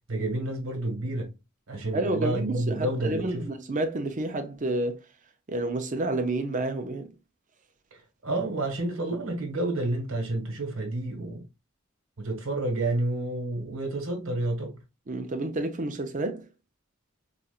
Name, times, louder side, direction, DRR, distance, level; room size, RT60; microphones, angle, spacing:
voice 1, 0.1-1.3 1.7-3.5 7.9-11.5 12.2-14.8, right 2 dB, 90° right, 1.3 m, -30 dB
voice 2, 1.9-5.0 5.5-7.1 15.1-16.5, right 2 dB, 40° right, 0.6 m, -30 dB
4.2 x 2.4 x 2.3 m
head